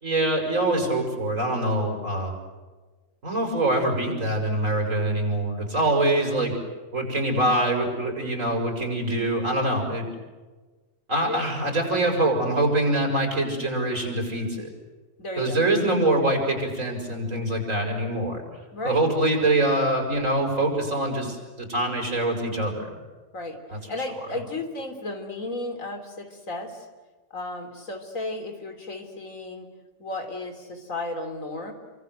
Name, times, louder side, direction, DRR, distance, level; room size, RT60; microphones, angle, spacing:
voice 1, 0.0-2.4 3.2-6.5 6.9-10.0 11.1-14.7 15.4-18.4 18.8-22.9 23.7-24.1, right 1 dB, 75° right, 2 dB, 7.1 m, -24 dB
voice 2, 15.2-15.6 18.7-19.0 23.3-23.6 23.9-26.9 27.3-29.7 30.0-31.7, left 2 dB, 85° left, 6 dB, 3.7 m, -34 dB
28.5 x 25.0 x 8.0 m, 1.3 s
omnidirectional pair, 1.4 m